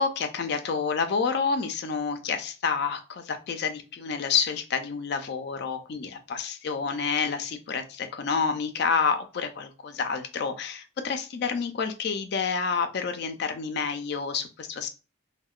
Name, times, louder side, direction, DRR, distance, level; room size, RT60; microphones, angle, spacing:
voice 1, 0.0-14.9, left 5 dB, 55° left, 7 dB, 0.3 m, -29 dB
2.7 x 2.1 x 2.3 m, 0.32 s
head